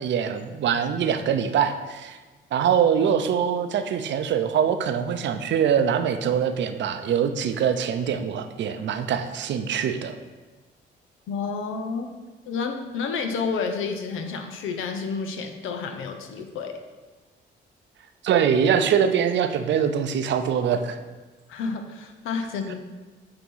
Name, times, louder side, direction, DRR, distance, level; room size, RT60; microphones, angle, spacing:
voice 1, 0.0-2.2 2.5-10.2 18.2-21.0, right 8 dB, 65° right, 8 dB, 0.6 m, -23 dB
voice 2, 11.3-12.1 12.5-16.7 21.5-22.7, left 5 dB, 85° left, 5 dB, 0.8 m, -30 dB
8.8 x 2.9 x 5.5 m, 1.3 s
cardioid pair, 90°, 20 cm